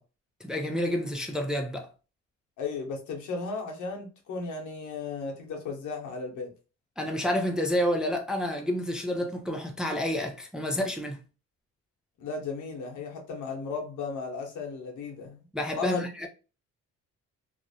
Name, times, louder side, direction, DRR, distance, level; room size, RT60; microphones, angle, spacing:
voice 1, 0.4-1.9 7.0-11.2 15.5-16.3, equal, ahead, 0.4 m, -29 dB
voice 2, 2.6-6.5 12.2-15.4 15.8-16.1, left 4 dB, 80° left, 0.9 m, -35 dB
2.4 x 2.1 x 2.6 m
cardioid pair, 90°, 30 cm